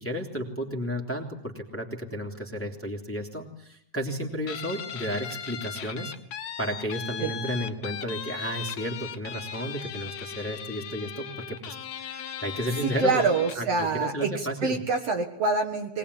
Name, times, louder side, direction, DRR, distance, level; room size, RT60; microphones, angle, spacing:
voice 1, 0.0-6.1 6.6-11.7 12.0-13.2 13.5-14.8, equal, 5° left, 1 dB, 2.9 m, -33 dB
Guitar, 4.5-13.7, left 8 dB, 60° left, 2.5 m, -38 dB
voice 2, 13.0-16.0, right 3 dB, 55° right, 5 dB, 2.6 m, -26 dB
23.0 x 20.5 x 9.9 m, 0.71 s
omnidirectional pair, 3.6 m